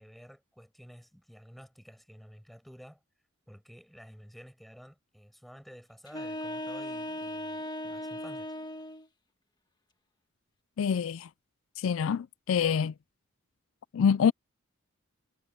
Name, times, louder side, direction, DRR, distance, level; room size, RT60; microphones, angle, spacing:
voice 1, 0.0-3.0 3.5-8.5, equal, ahead, 7.8 m, -52 dB
sound 1, 6.1-9.1, left 1 dB, 20° left, 1.7 m, -37 dB
voice 2, 10.8-11.3 11.8-12.9 13.9-14.3, left 7 dB, 75° left, 0.4 m, -26 dB
head